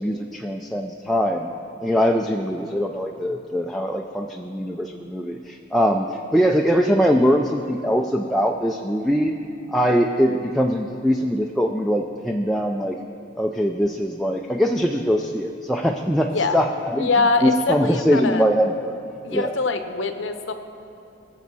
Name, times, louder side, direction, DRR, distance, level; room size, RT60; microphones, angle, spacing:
voice 1, 0.0-1.5 1.8-9.3 9.7-13.0 13.4-17.1 17.4-18.9 19.3-19.5, equal, ahead, 0 dB, 0.4 m, -22 dB
voice 2, 17.0-18.5 19.2-20.5, left 3 dB, 70° left, 7 dB, 0.9 m, -23 dB
21.5 x 7.3 x 4.1 m, 2.9 s
head